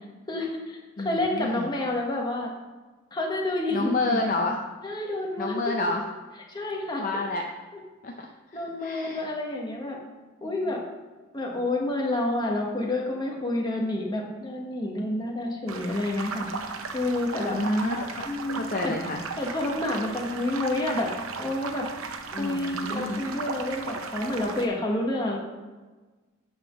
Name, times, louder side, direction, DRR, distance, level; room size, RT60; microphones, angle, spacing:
voice 1, 0.3-2.5 3.1-4.3 4.8-5.7 6.5-7.0 8.5-10.0 10.4-10.8 11.3-16.5 16.9-17.6 18.2-18.9 19.4-21.1 21.4-21.9 22.4-25.4, left 1 dB, 20° left, -1 dB, 1.1 m, -29 dB
voice 2, 1.0-1.7 3.7-4.6 5.4-6.0 7.0-7.4 8.0-8.3 8.5-9.2 10.6-10.7 17.4-19.2 22.3-23.2, left 2 dB, 40° left, 2 dB, 0.5 m, -29 dB
sound 1, 15.7-24.7, right 4 dB, 80° right, 0.7 m, -36 dB
8.6 x 3.7 x 6.0 m, 1.3 s
head